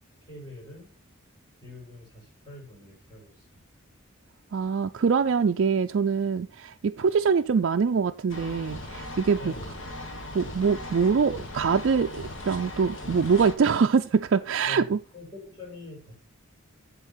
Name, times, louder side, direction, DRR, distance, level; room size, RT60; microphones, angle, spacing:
voice 1, 0.3-0.9 1.6-3.6 9.4-9.8 14.6-16.1, left 2 dB, 20° left, 5.3 m, -44 dB
voice 2, 4.5-9.5 10.3-15.0, right 5 dB, 60° right, 0.4 m, -24 dB
sound 1, 8.3-13.6, left 1 dB, 65° left, 1.5 m, -38 dB
8.0 x 7.3 x 5.7 m
head